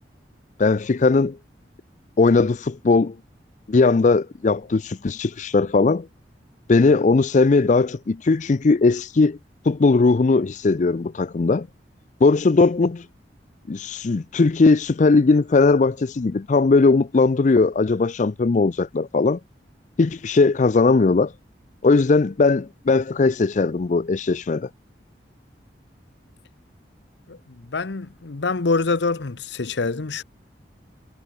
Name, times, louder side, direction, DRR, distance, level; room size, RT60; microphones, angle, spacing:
voice 1, 0.6-1.4 2.2-3.2 3.7-6.1 6.7-9.4 9.6-11.7 12.2-13.1 13.7-19.4 20.0-21.3 21.8-24.7, left 3 dB, 45° left, 0.4 m, -18 dB
voice 2, 27.7-30.2, left 3 dB, 75° left, 0.8 m, -25 dB
head